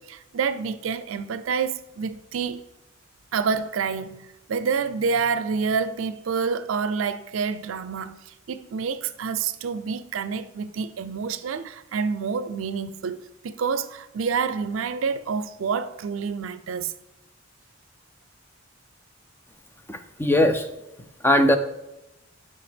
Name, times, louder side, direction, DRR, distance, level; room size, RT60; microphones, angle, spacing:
voice 1, 0.0-2.6 3.3-16.9, right 5 dB, 80° right, 0.4 m, -28 dB
voice 2, 19.9-20.7 21.2-21.6, left 1 dB, 10° left, 0.5 m, -19 dB
7.7 x 5.3 x 3.4 m
head